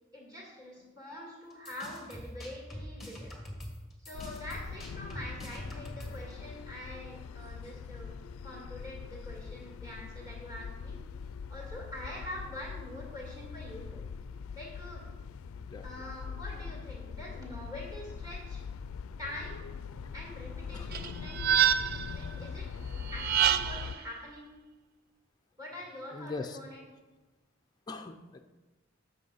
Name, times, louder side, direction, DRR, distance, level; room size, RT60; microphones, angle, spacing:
voice 1, 0.1-3.3 4.1-8.2 8.4-11.0 11.5-14.1 14.5-15.0 15.8-18.6 19.2-19.7 20.1-21.6 22.1-22.7 23.1-24.5 25.6-26.8, left 1 dB, 20° right, -3 dB, 2.4 m, -45 dB
sound 1, 1.5-6.3, equal, ahead, 1.5 m, -44 dB
sound 2, 4.1-24.0, left 6 dB, 90° left, 0.3 m, -42 dB
sound 3, 20.9-22.1 23.1-24.0, right 9 dB, 45° right, 0.4 m, -27 dB
voice 2, 26.1-26.6 27.9-28.4, left 3 dB, 20° left, 4 dB, 0.4 m, -41 dB
7.8 x 6.3 x 5.5 m, 1.2 s
head